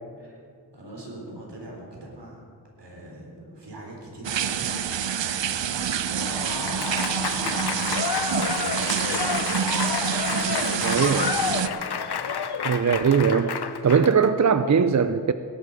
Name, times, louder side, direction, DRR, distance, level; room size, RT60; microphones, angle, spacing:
voice 1, 0.7-2.4 2.8-5.0 5.3-12.6, right 1 dB, 70° right, -2 dB, 4.1 m, -41 dB
sound 1, 4.2-11.7, right 8 dB, 90° right, 0.6 m, -27 dB
Applause / Crowd, 6.1-14.3, left 6 dB, 65° left, 0.8 m, -29 dB
voice 2, 10.8-11.3 12.6-13.6 13.8-15.3, right 6 dB, 40° right, 11 dB, 0.5 m, -20 dB
19.0 x 11.0 x 5.0 m, 2.3 s
wide cardioid pair, 80°, 43 cm